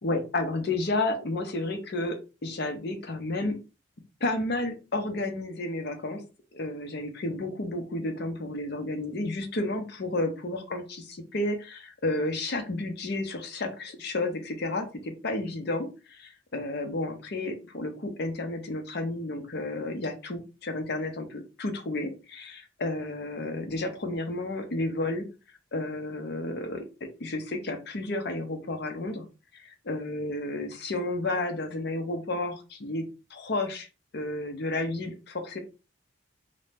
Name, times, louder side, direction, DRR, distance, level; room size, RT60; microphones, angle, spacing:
voice 1, 0.0-3.6 4.2-6.2 6.5-25.3 25.7-26.9 27.2-29.2 29.5-33.0 33.3-33.9 34.1-35.6, left 2 dB, 50° left, 6 dB, 0.6 m, -31 dB
2.6 x 2.1 x 3.2 m, 0.31 s
head